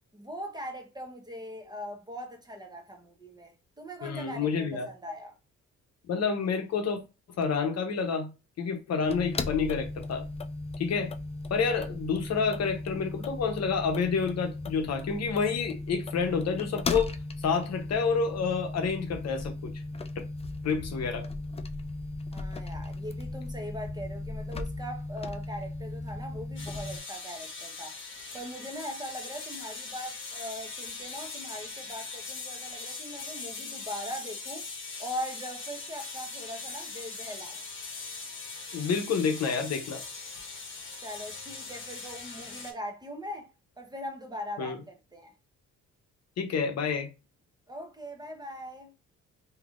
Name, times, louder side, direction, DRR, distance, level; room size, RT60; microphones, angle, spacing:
voice 1, 0.1-5.3 22.3-28.0 28.3-34.6 35.0-37.6 41.0-43.5 43.8-45.3 47.7-48.9, equal, 15° right, 0.9 m, -40 dB
voice 2, 4.0-4.9 6.1-7.0 7.4-8.3 8.6-10.2 10.8-11.1 11.5-17.1 17.4-19.7 20.6-21.2 38.7-40.0 44.6-44.8 46.4-47.1, left 5 dB, 60° left, 0.8 m, -29 dB
sound 1, 9.0-27.0, left 2 dB, 20° left, 0.3 m, -37 dB
sound 2, 26.6-42.7, left 4 dB, 40° left, 1.0 m, -41 dB
3.3 x 2.8 x 2.4 m
cardioid pair, 90°, 30 cm